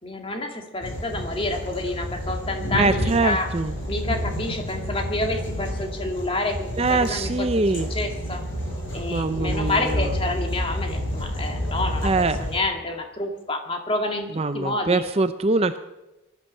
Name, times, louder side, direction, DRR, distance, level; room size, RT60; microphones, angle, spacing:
voice 1, 0.0-3.5 3.9-7.6 7.9-8.4 8.9-12.1 12.4-14.3 14.5-15.0, left 2 dB, 25° left, 3 dB, 2.1 m, -28 dB
sound 1, 0.8-12.6, equal, 65° left, 6.7 m, -29 dB
voice 2, 2.8-3.8 6.8-7.9 9.1-10.1 12.0-12.5 14.4-15.8, right 3 dB, 30° right, 11 dB, 0.5 m, -23 dB
19.0 x 11.5 x 6.5 m, 1.0 s
head